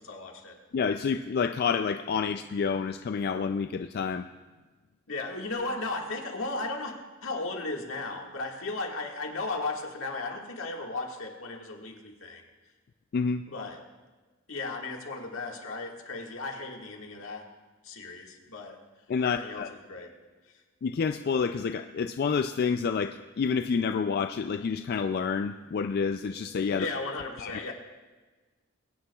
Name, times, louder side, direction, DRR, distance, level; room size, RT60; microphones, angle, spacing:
voice 1, 0.0-0.6 5.1-6.9 7.2-12.4 13.5-13.8 14.5-17.4 17.8-18.8 19.2-19.6 19.9-20.1 26.7-27.7, left 3 dB, 80° left, 0 dB, 1.8 m, -35 dB
voice 2, 0.7-4.3 13.1-13.4 19.1-19.7 20.8-26.9 27.4-27.5, left 5 dB, 50° left, 8 dB, 0.3 m, -28 dB
22.5 x 9.6 x 2.3 m, 1.3 s
head